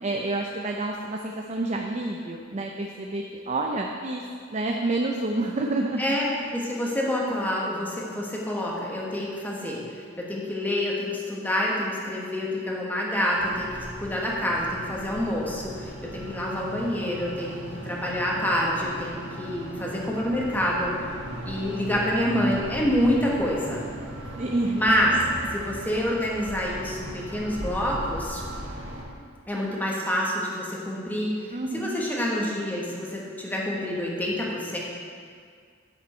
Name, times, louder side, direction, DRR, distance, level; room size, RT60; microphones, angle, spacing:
voice 1, 0.0-4.2 4.5-6.2 24.4-24.8 31.5-32.0, right 2 dB, 35° right, 1 dB, 0.5 m, -28 dB
voice 2, 6.5-21.2 21.4-23.8 24.7-25.1 25.5-28.4 29.5-34.8, equal, 10° left, -4 dB, 1.4 m, -27 dB
sound 1, 13.4-29.0, right 1 dB, 60° right, 1.5 m, -38 dB
9.6 x 7.4 x 4.4 m, 2.1 s
head